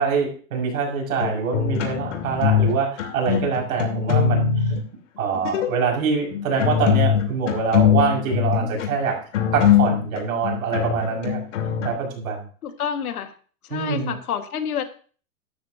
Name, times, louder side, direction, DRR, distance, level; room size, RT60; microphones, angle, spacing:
voice 1, 0.0-4.7 5.2-9.2 9.5-11.4 11.8-12.5 13.7-14.1, right 5 dB, 70° right, 1 dB, 6.3 m, -25 dB
sound 1, 1.2-2.7 3.0-4.8 5.3-5.7 6.3-11.9, left 8 dB, 55° left, 2.8 m, -22 dB
voice 2, 12.6-13.3 13.7-14.8, left 8 dB, 80° left, 7 dB, 2.0 m, -28 dB
14.5 x 12.5 x 2.9 m, 0.41 s
supercardioid pair, 175°, 43 cm